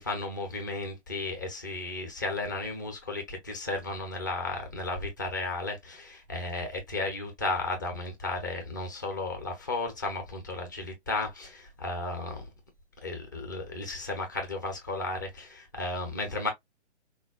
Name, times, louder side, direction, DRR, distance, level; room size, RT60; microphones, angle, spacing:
voice 1, 0.0-12.5 13.0-16.5, left 2 dB, 15° left, 0.5 m, -34 dB
3.7 x 2.2 x 2.3 m
figure-of-eight pair, 135°, 36 cm